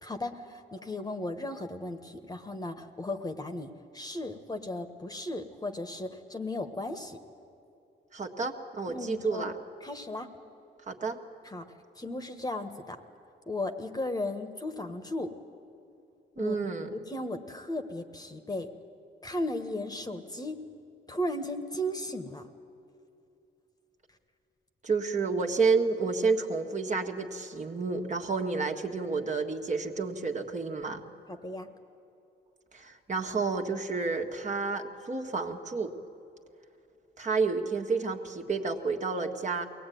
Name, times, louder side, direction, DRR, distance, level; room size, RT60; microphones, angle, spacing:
voice 1, 0.0-7.2 8.9-9.5 9.8-10.3 11.4-11.6 12.0-13.0 13.5-15.3 16.4-16.6 16.9-18.7 19.2-20.6 21.1-22.5 31.3-31.7, left 1 dB, 20° left, 7 dB, 1.4 m, -36 dB
voice 2, 8.1-9.5 10.9-11.2 16.4-16.9 24.8-31.0 32.7-35.9 37.2-39.7, right 4 dB, 35° right, 3 dB, 1.8 m, -30 dB
22.5 x 18.5 x 9.4 m, 2.7 s
cardioid pair, 90°, 20 cm